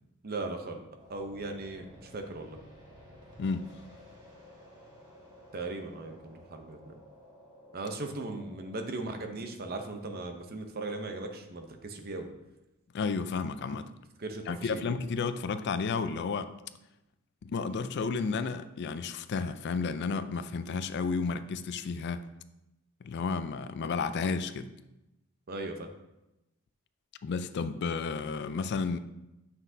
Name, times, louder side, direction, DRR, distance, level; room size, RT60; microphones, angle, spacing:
voice 1, 0.2-0.8 1.1-2.6 5.5-6.9 7.7-12.3 14.2-15.0 25.5-25.9, right 2 dB, 45° right, 0.7 m, -38 dB
sound 1, 1.0-8.9, left 1 dB, 20° right, 1.4 m, -54 dB
voice 2, 12.9-13.9 14.5-16.5 17.4-22.3 23.0-24.7 27.2-29.0, left 4 dB, 50° left, 0.4 m, -32 dB
7.2 x 6.0 x 2.7 m
head